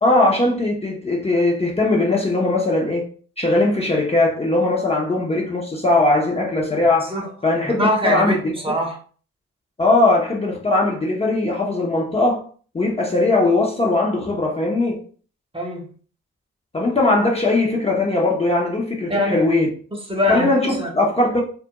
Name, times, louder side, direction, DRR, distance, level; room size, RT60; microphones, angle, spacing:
voice 1, 0.0-3.1 3.4-7.1 7.4-8.5 9.8-12.4 12.7-15.0 16.7-19.7 20.3-21.4, left 2 dB, 20° left, 0.6 m, -19 dB
voice 2, 7.0-7.3 7.6-9.0 15.5-15.9 19.1-19.4 19.9-20.5 20.8-20.9, left 1 dB, 15° right, 0.8 m, -23 dB
2.3 x 2.1 x 2.9 m
supercardioid pair, 55°, 31 cm